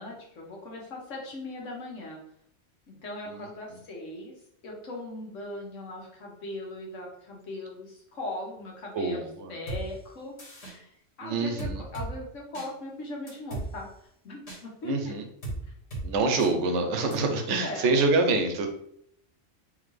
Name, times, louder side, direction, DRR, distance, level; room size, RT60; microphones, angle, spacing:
voice 1, 0.0-2.2 2.9-4.3 4.6-9.2 9.5-13.9 14.2-14.9 16.3-16.6 17.0-17.9, left 1 dB, 85° left, -2 dB, 1.5 m, -39 dB
voice 2, 8.9-9.6 11.2-11.8 14.8-15.2 16.0-18.7, right 3 dB, 75° right, 5 dB, 1.0 m, -26 dB
sound 1, 9.7-9.8 10.4-10.7 11.6-12.1 12.5-12.7 13.3-13.7 14.5-14.6 15.4-15.6 15.9-16.0 16.4-16.5 17.1-17.2, right 2 dB, 60° left, 1.7 m, -35 dB
3.8 x 3.1 x 3.2 m, 0.72 s
omnidirectional pair, 1.2 m